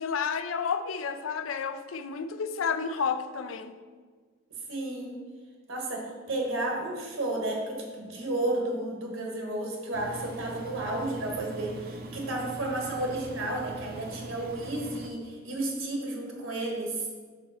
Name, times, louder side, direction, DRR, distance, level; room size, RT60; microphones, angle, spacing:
voice 1, 0.0-3.7, left 6 dB, 75° left, 10 dB, 0.4 m, -31 dB
voice 2, 4.7-5.2 5.7-17.0, right 1 dB, 85° right, 0 dB, 1.5 m, -32 dB
Engine, 9.9-15.1, right 2 dB, 50° right, 0.5 m, -42 dB
5.0 x 4.2 x 5.9 m, 1.5 s
head